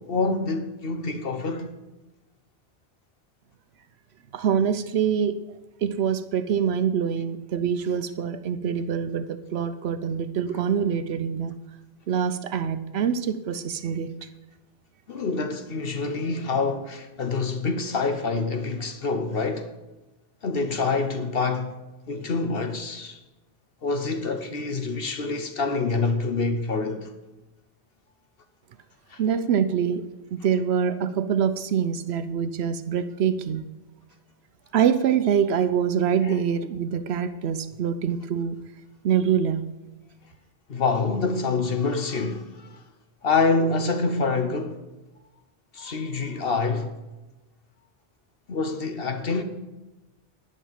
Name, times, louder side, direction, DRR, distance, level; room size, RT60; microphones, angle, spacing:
voice 1, 0.0-1.7 15.1-19.7 20.4-21.7 22.1-23.2 23.8-27.1 29.1-29.2 36.2-36.4 40.7-42.7 43.2-44.8 45.7-47.0 48.5-49.4, left 4 dB, 65° left, 1.1 m, -26 dB
voice 2, 4.3-5.3 5.8-11.6 12.1-14.1 29.2-30.0 30.3-33.7 34.7-38.6 39.0-39.6, right 8 dB, 80° right, 0.9 m, -25 dB
11.0 x 5.7 x 8.8 m
omnidirectional pair, 1.1 m